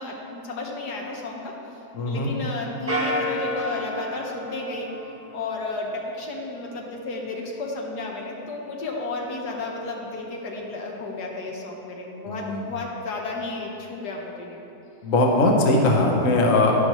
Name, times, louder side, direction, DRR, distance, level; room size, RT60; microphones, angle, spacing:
voice 1, 0.0-1.5 2.1-4.9 5.3-14.6, left 2 dB, 75° left, -1 dB, 1.6 m, -32 dB
voice 2, 1.9-2.3 12.2-12.5 15.0-16.7, left 2 dB, 55° left, 0 dB, 1.3 m, -20 dB
sound 1, 2.9-5.6, left 1 dB, 10° right, 0.7 m, -30 dB
11.0 x 10.5 x 3.1 m, 2.9 s
omnidirectional pair, 1.8 m